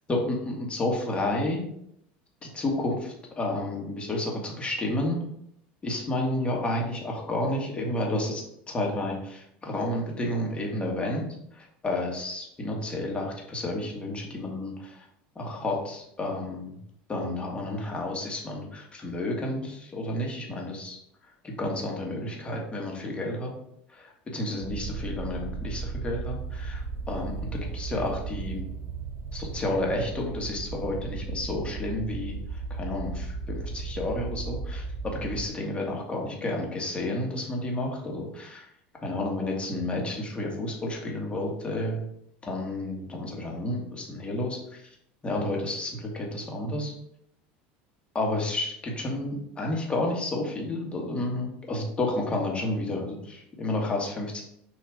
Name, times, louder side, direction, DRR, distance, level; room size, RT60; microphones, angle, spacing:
voice 1, 0.1-1.6 2.4-5.2 5.8-11.2 11.5-15.0 15.3-16.8 17.1-21.0 21.4-23.5 23.9-28.6 29.3-38.7 39.0-42.1 42.5-44.8 45.2-46.9 48.1-54.4, left 1 dB, 20° left, 0 dB, 1.7 m, -31 dB
sound 1, 24.6-35.5, right 4 dB, 55° right, 1.1 m, -35 dB
6.1 x 3.2 x 4.8 m, 0.73 s
supercardioid pair, 110°, 5 cm